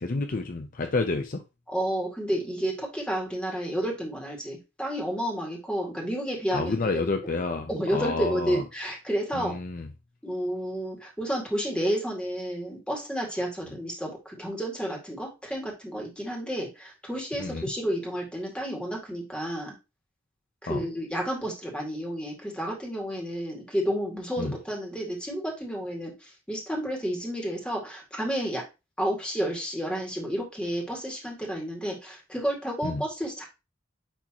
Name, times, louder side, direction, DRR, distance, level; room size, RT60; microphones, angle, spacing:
voice 1, 0.0-1.4 6.5-8.6 9.3-9.9 17.4-17.7 20.7-20.9 24.4-24.5 32.8-33.0, left 3 dB, 45° left, 5 dB, 0.6 m, -29 dB
voice 2, 1.7-7.0 7.7-9.6 10.2-19.7 20.6-28.6 29.0-33.5, equal, 5° left, -1 dB, 2.2 m, -31 dB
10.0 x 3.5 x 3.0 m, 0.26 s
head